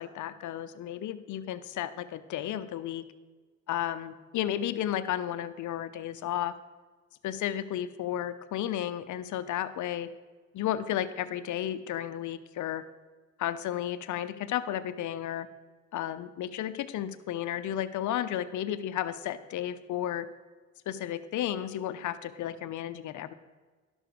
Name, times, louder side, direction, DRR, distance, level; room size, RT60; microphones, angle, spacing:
voice 1, 0.0-3.0 3.7-6.5 7.2-10.1 10.5-12.8 13.4-15.5 15.9-20.3 20.9-23.3, left 11 dB, 75° left, 13 dB, 0.8 m, -33 dB
12.0 x 6.3 x 6.9 m, 1.4 s
cardioid pair, 90°, 30 cm